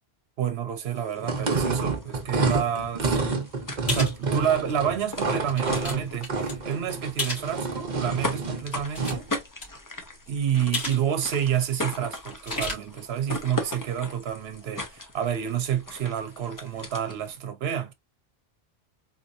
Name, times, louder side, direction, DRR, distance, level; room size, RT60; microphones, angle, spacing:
voice 1, 0.4-3.2 3.9-9.3 10.3-17.9, right 9 dB, 75° right, 1.0 m, -29 dB
sound 1, 0.9-17.4, left 2 dB, 20° left, 0.6 m, -39 dB
sound 2, 1.2-9.3, right 3 dB, 45° right, 0.9 m, -28 dB
sound 3, 3.9-4.2 4.8-4.9 5.4-5.9 6.2-6.5 7.2-7.5 8.6-9.4 9.6-9.7 10.7-11.0 11.3-11.4 12.3-12.7, left 2 dB, 75° left, 2.4 m, -32 dB
4.0 x 2.9 x 2.6 m
omnidirectional pair, 1.1 m